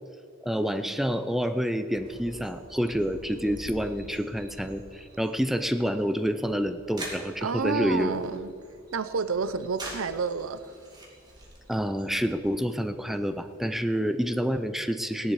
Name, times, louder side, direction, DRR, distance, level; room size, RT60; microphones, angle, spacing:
voice 1, 0.4-8.2 11.7-15.3, equal, ahead, 8 dB, 0.5 m, -28 dB
sound 1, 1.9-13.7, right 1 dB, 20° right, 2.5 m, -46 dB
voice 2, 7.4-8.5 8.9-10.7, right 5 dB, 75° right, 13 dB, 0.6 m, -29 dB
17.0 x 11.0 x 4.8 m, 2.3 s
head